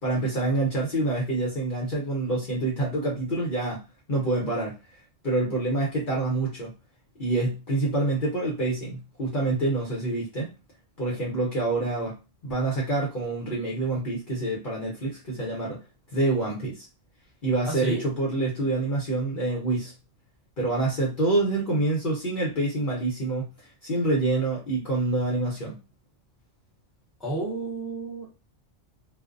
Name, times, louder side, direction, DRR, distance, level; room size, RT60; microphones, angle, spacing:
voice 1, 0.0-3.8 4.1-4.8 5.2-6.7 7.2-10.5 11.0-12.1 12.4-15.8 16.1-16.9 17.4-19.9 20.6-23.5 23.8-25.7, right 2 dB, 50° left, -5 dB, 0.9 m, -26 dB
voice 2, 17.6-18.0 27.2-28.3, right 3 dB, ahead, -6 dB, 1.0 m, -31 dB
2.5 x 2.2 x 2.5 m, 0.29 s
omnidirectional pair, 1.3 m